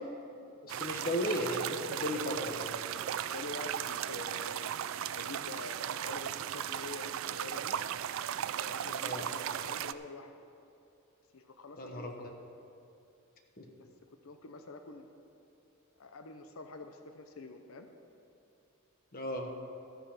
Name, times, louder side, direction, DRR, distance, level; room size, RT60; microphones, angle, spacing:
voice 1, 0.6-2.7 9.0-9.2 11.8-12.3 13.6-13.7 19.1-19.5, left 1 dB, 45° left, 3 dB, 1.2 m, -35 dB
sound 1, 0.7-9.9, right 10 dB, 65° right, 0.3 m, -36 dB
voice 2, 3.3-4.8 5.1-7.8 8.6-10.3 11.3-12.3 14.2-15.1 16.0-17.9, left 3 dB, 75° left, 7 dB, 0.7 m, -46 dB
12.5 x 8.2 x 5.7 m, 2.7 s
head